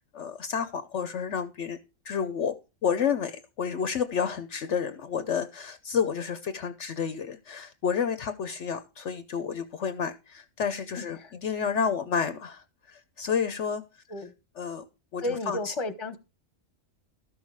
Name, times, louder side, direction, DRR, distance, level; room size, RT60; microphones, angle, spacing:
voice 1, 0.0-1.8 2.0-2.5 2.8-13.8 14.6-14.9 15.1-15.7, left 7 dB, 65° left, 1.0 m, -30 dB
voice 2, 11.0-11.3 11.8-11.9 14.1-14.3 15.2-16.2, left 2 dB, 25° left, 1.1 m, -33 dB
12.5 x 6.3 x 4.7 m
omnidirectional pair, 1.4 m